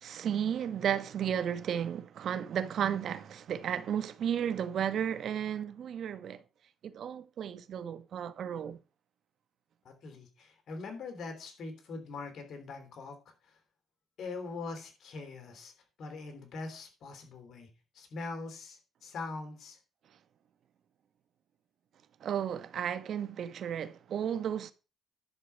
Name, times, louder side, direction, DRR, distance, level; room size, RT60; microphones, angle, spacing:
voice 1, 0.0-6.4 6.8-8.8 22.2-24.7, right 9 dB, 65° right, 1.0 m, -33 dB
voice 2, 9.9-13.2 13.4-13.5 14.2-15.7 16.0-17.7 17.9-19.8, left 3 dB, 65° left, 3.4 m, -42 dB
11.0 x 4.8 x 6.9 m
cardioid pair, 90°, 0 cm